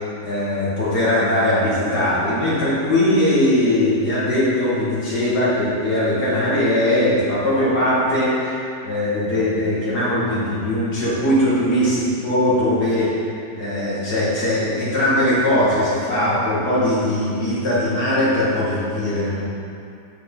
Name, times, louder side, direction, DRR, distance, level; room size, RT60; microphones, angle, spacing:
voice 1, 0.2-19.5, left 1 dB, 70° left, -9 dB, 2.5 m, -20 dB
6.4 x 4.6 x 5.4 m, 2.4 s
omnidirectional pair, 1.8 m